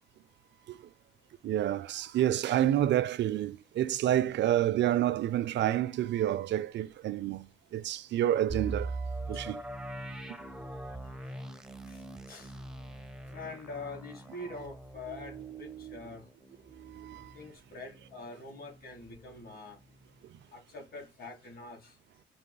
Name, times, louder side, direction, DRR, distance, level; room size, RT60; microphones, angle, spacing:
voice 1, 1.4-9.6 10.3-10.4 15.1-16.0 16.7-17.3, right 12 dB, 65° right, 0.5 m, -29 dB
sound 1, 8.5-18.2 18.6-18.7 19.2-19.4, right 2 dB, 5° right, 0.6 m, -42 dB
voice 2, 13.3-16.2 17.3-19.8 20.5-21.9, left 3 dB, 50° left, 2.5 m, -44 dB
5.5 x 2.0 x 3.8 m
cardioid pair, 90°, 20 cm